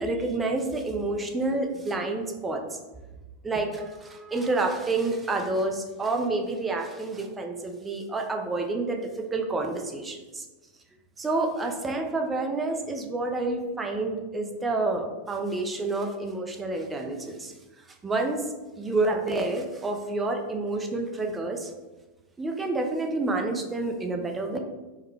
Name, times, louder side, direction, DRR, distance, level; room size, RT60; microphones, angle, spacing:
voice 1, 0.0-2.6 3.4-9.0 9.3-10.4 11.2-17.5 18.0-18.5 18.8-21.7 22.4-24.6, right 2 dB, 15° right, 3 dB, 0.5 m, -28 dB
4.7 x 2.2 x 3.2 m, 1.1 s
figure-of-eight pair, 90°, 0 cm